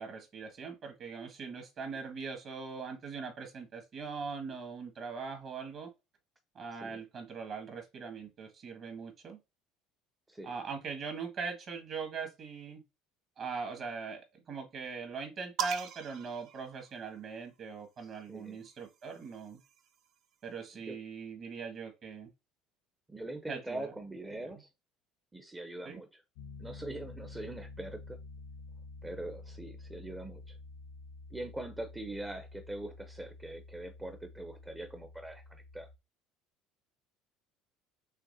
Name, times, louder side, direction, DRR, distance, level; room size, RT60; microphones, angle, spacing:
voice 1, 0.0-5.9 6.6-9.4 10.4-12.8 13.4-19.6 20.4-22.3 23.5-23.9 25.9-26.0, right 5 dB, 45° right, 1.9 m, -41 dB
voice 2, 6.7-7.0 10.3-10.5 18.0-18.6 20.9-21.0 23.1-24.7 25.3-26.2 26.6-28.2 29.0-30.6 31.3-35.9, right 1 dB, 10° right, 0.7 m, -43 dB
sound 1, 15.6-17.4 18.5-20.1, right 8 dB, 60° right, 0.7 m, -41 dB
Piano, 26.4-36.0, left 3 dB, 90° left, 0.9 m, -49 dB
5.7 x 3.3 x 2.7 m
supercardioid pair, 105°, 0 cm